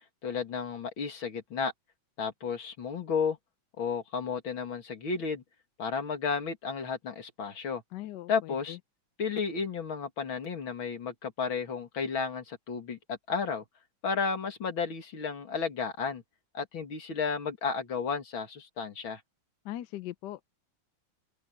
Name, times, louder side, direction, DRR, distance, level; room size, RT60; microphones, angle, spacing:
voice 1, 0.2-1.7 2.2-3.4 3.8-5.4 5.8-7.8 8.3-8.8 9.2-13.6 14.0-16.2 16.5-19.2, left 5 dB, 85° left, 3.1 m, -33 dB
voice 2, 7.9-8.8 19.6-20.4, left 13 dB, 70° left, 1.2 m, -40 dB
open air
omnidirectional pair, 2.1 m